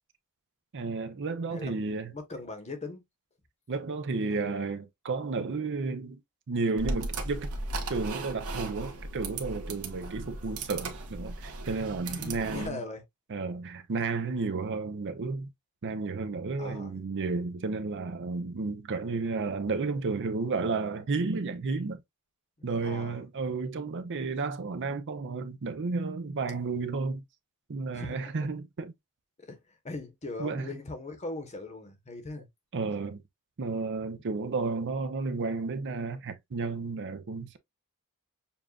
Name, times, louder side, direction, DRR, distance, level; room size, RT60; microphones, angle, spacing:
voice 1, 0.7-2.1 3.7-6.2 6.5-7.5 7.9-12.8 13.3-15.5 15.8-22.0 22.6-27.2 27.7-28.9 30.4-30.8 32.7-33.2 33.6-37.6, right 4 dB, 55° right, 0.5 m, -32 dB
voice 2, 1.5-3.0 12.1-13.0 16.6-16.9 22.6-23.2 27.9-28.3 29.4-29.6 29.8-32.5, left 2 dB, 30° left, 1.0 m, -40 dB
sound 1, 6.8-12.7, right 2 dB, 75° right, 1.1 m, -36 dB
7.0 x 2.4 x 2.3 m
head